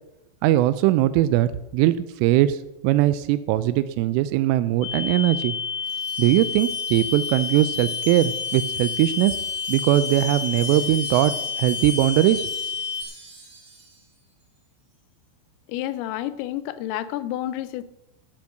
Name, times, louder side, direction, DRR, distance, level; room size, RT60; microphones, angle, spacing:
voice 1, 0.4-2.6 2.8-5.5 6.2-9.4 9.7-12.5, right 14 dB, 85° right, 14 dB, 3.0 m, -20 dB
sound 1, 4.8-13.0, left 6 dB, 70° left, 1.6 m, -29 dB
Wind chime, 5.8-14.0, right 3 dB, 35° right, 2.5 m, -42 dB
voice 2, 15.7-17.8, left 13 dB, 85° left, 15 dB, 3.3 m, -30 dB
13.0 x 6.9 x 6.4 m, 0.90 s
omnidirectional pair, 5.8 m